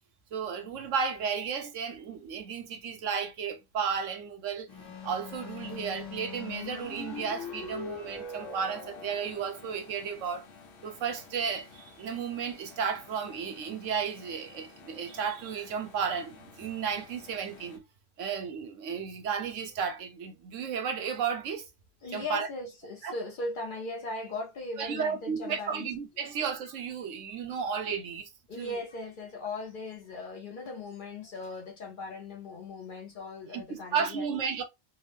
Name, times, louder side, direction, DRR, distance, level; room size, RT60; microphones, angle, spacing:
voice 1, 0.3-4.7 5.0-10.5 10.8-17.8 18.2-21.7 22.1-22.5 23.0-23.1 24.8-28.3 28.6-28.8 33.5-33.6 33.9-34.6, right 6 dB, 85° right, 1.1 m, -33 dB
sound 1, 4.7-17.8, left 4 dB, 80° left, 1.2 m, -45 dB
voice 2, 22.0-25.9 28.5-34.3, left 2 dB, 55° left, 0.6 m, -38 dB
3.5 x 2.0 x 3.2 m
omnidirectional pair, 1.3 m